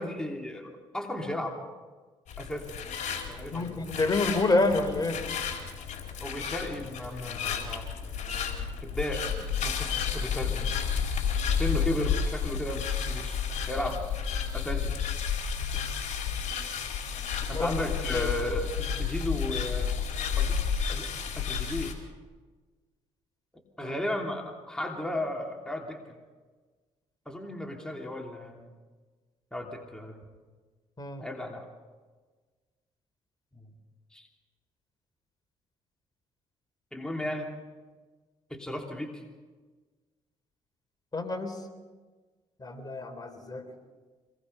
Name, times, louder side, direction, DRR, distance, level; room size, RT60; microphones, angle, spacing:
voice 1, 0.0-1.6 2.4-2.8 3.3-3.8 6.2-7.9 8.8-10.7 11.5-13.4 13.7-14.0 14.5-14.9 17.5-19.9 20.4-20.6 20.9-22.0 23.8-26.1 27.3-28.7 29.5-30.2 31.2-31.7 33.6-33.7 34.1-34.3 36.9-37.5 38.5-39.2, left 1 dB, 5° left, 1 dB, 3.1 m, -35 dB
sound 1, 2.3-21.9, left 7 dB, 60° left, 4.3 m, -31 dB
voice 2, 3.5-5.2 17.5-17.8 18.1-18.3 23.8-23.9 31.0-31.2 41.1-41.6 42.6-43.7, left 2 dB, 30° left, 7 dB, 3.6 m, -28 dB
26.0 x 20.0 x 5.6 m, 1.4 s
supercardioid pair, 65°, 14 cm